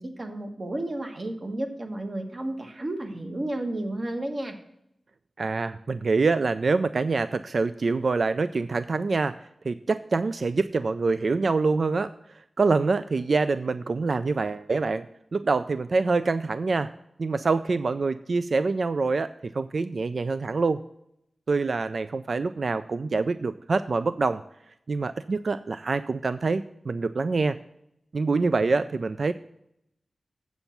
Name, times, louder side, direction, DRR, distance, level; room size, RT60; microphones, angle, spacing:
voice 1, 0.0-4.6, right 1 dB, 45° right, 4 dB, 1.3 m, -32 dB
voice 2, 5.4-15.1 15.3-16.9 17.2-20.8 21.5-24.4 24.9-27.6 28.1-29.3, right 4 dB, 60° right, 12 dB, 0.3 m, -25 dB
8.0 x 7.1 x 5.8 m, 0.78 s
wide cardioid pair, 115°, 0 cm